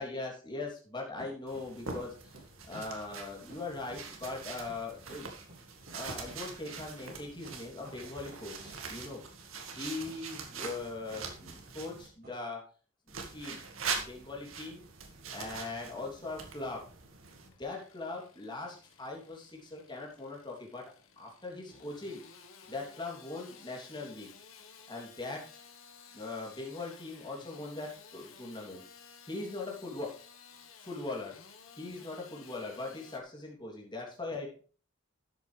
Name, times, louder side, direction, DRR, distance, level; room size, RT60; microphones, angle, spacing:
voice 1, 0.0-2.3 2.7-5.3 5.9-9.2 9.7-12.6 13.3-13.6 13.9-14.8 15.3-16.9 17.4-22.2 22.7-24.3 24.9-25.4 26.1-28.8 29.3-30.1 30.8-31.4 31.8-34.6, left 3 dB, 25° left, -1 dB, 3.2 m, -40 dB
sound 1, 1.2-1.7 1.9-2.1 2.3-2.5 2.7-3.2 3.5-3.6 3.9-4.0 4.3-4.4 4.7-4.8 5.1-5.2 5.5-5.6 5.9-6.0 6.3-6.4 6.7-6.8 7.1-7.2 7.4-7.6 7.8-8.0 8.2-8.4 8.6-8.8 10.0-10.2 11.1-11.3 12.2-12.3, right 1 dB, 50° right, 5.9 m, -51 dB
sound 2, 1.5-12.1 13.1-17.5, right 5 dB, 85° right, 2.1 m, -43 dB
Engine starting / Sawing, 17.4-33.2, left 6 dB, 85° left, 1.5 m, -55 dB
12.0 x 8.1 x 3.4 m, 0.38 s
head